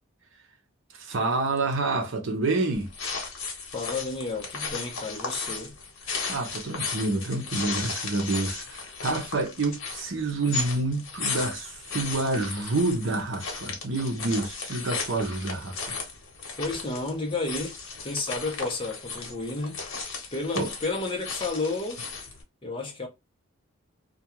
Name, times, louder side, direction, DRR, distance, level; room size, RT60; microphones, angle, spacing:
voice 1, 0.9-2.9 6.3-16.0 20.5-20.7, right 2 dB, 60° right, 0.6 m, -28 dB
sound 1, 2.7-22.4, left 4 dB, 80° left, 0.9 m, -35 dB
voice 2, 3.7-5.7 16.6-17.8 18.0-19.8 20.3-22.0 22.6-23.1, left 3 dB, 25° left, 0.6 m, -31 dB
2.4 x 2.2 x 2.9 m
head